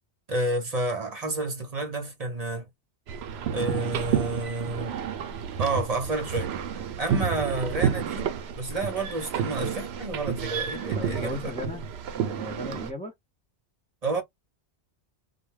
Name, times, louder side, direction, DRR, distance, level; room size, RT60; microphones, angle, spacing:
voice 1, 0.3-2.7 3.5-5.0 5.6-6.5 7.0-11.5 14.0-14.2, right 2 dB, 40° right, 0.8 m, -30 dB
sound 1, 3.1-12.9, right 8 dB, 70° right, 0.8 m, -30 dB
voice 2, 10.9-11.8 12.1-13.1, left 1 dB, 10° left, 0.4 m, -37 dB
2.3 x 2.2 x 3.1 m
omnidirectional pair, 1.1 m